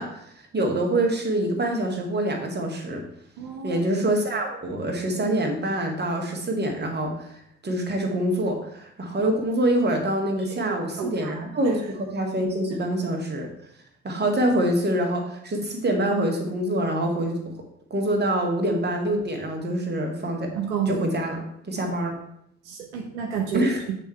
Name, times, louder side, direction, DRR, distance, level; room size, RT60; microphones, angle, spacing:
voice 1, 0.0-3.0 3.6-13.5 14.0-17.4 17.9-20.5 20.9-22.2 23.5-23.8, right 1 dB, 30° right, 2 dB, 1.7 m, -25 dB
voice 2, 3.4-3.8 10.4-11.7 20.5-21.0 21.8-21.9 22.6-24.0, right 7 dB, 70° right, 1 dB, 0.8 m, -31 dB
8.2 x 3.7 x 4.4 m, 0.72 s
figure-of-eight pair, 45°, 35 cm